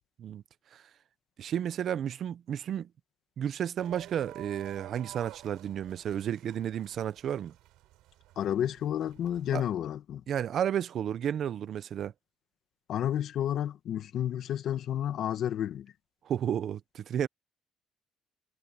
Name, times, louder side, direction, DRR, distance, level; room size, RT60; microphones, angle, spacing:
voice 1, 1.4-2.9 3.4-7.5 9.5-9.6 10.3-12.1 16.2-17.3, right 9 dB, 50° right, 0.8 m, -32 dB
sound 1, 3.8-9.5, right 16 dB, 85° right, 5.1 m, -51 dB
voice 2, 8.3-10.2 12.9-15.9, left 10 dB, 60° left, 1.6 m, -31 dB
cardioid pair, 130°, 0 cm